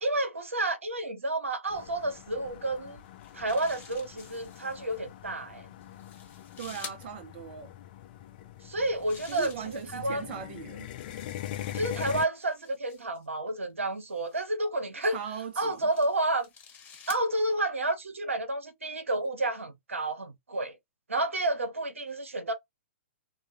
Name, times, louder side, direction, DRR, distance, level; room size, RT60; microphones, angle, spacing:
voice 1, 0.0-3.0 3.3-5.7 8.6-9.5 9.9-10.2 11.7-15.2 15.6-16.5 17.1-20.8 21.1-22.5, right 2 dB, 80° right, 0.8 m, -30 dB
sound 1, 1.7-12.3, left 12 dB, 45° left, 0.4 m, -43 dB
sound 2, 3.0-5.0 5.8-7.0 8.7-10.3 11.1-13.3 14.1-14.5 15.3-17.3, left 6 dB, 20° left, 0.9 m, -50 dB
voice 2, 6.6-7.7 9.3-10.9 15.1-15.9, right 8 dB, 50° right, 0.3 m, -39 dB
2.2 x 2.0 x 2.8 m
figure-of-eight pair, 115°, 7 cm